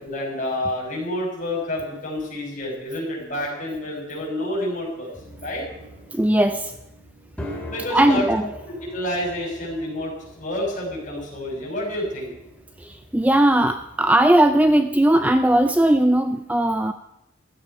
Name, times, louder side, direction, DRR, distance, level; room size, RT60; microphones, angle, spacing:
voice 1, 0.0-5.1 5.4-5.6 7.6-8.3 8.9-12.3, left 1 dB, 40° left, -2 dB, 6.7 m, -28 dB
sound 1, 5.1-16.1, equal, 5° left, 2.9 m, -43 dB
voice 2, 6.1-6.7 7.9-8.5 12.8-16.9, right 1 dB, 10° right, 8 dB, 0.5 m, -18 dB
15.5 x 13.5 x 5.9 m, 0.83 s
head